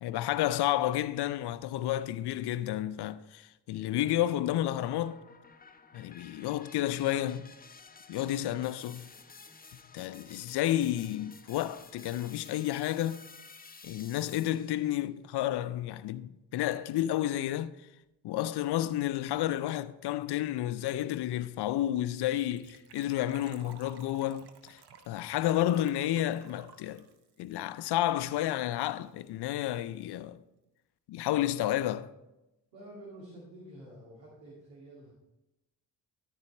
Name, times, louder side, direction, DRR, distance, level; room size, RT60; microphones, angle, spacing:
voice 1, 0.0-5.2 5.9-7.5 8.1-9.1 9.9-13.2 13.8-17.7 18.2-24.8 25.1-27.0 27.4-30.4 31.1-32.1, left 13 dB, 55° left, 0.6 m, -31 dB
sound 1, 3.8-14.9, left 4 dB, 20° left, 0.8 m, -53 dB
Gurgling / Trickle dribble / Fill (with liquid), 22.3-28.5 28.8-28.9 29.1-29.3 29.6-29.7, right 6 dB, 50° right, 1.1 m, -55 dB
voice 2, 32.7-35.1, right 1 dB, 80° right, 2.3 m, -49 dB
13.5 x 4.7 x 4.4 m
hypercardioid pair, 40°, 50 cm